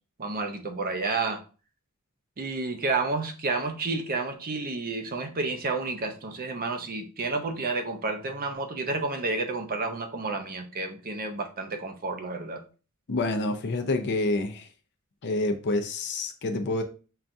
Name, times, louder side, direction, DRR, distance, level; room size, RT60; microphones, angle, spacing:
voice 1, 0.2-1.4 2.4-12.6, right 3 dB, 40° right, 0.6 m, -30 dB
voice 2, 13.1-14.7 15.2-16.8, left 2 dB, 50° left, 0.5 m, -27 dB
5.7 x 2.3 x 2.6 m
head